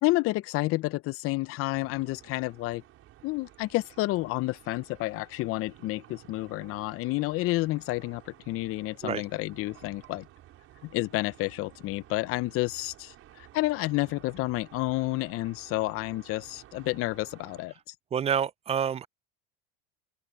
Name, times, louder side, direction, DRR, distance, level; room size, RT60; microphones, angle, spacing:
voice 1, 0.0-2.8 3.2-10.3 10.8-17.9, left 19 dB, 45° left, 0.8 m, -30 dB
sound 1, 1.7-17.6, right 13 dB, 45° right, 5.4 m, -54 dB
voice 2, 18.1-19.1, right 8 dB, 20° right, 0.5 m, -28 dB
supercardioid pair, 105°, 30 cm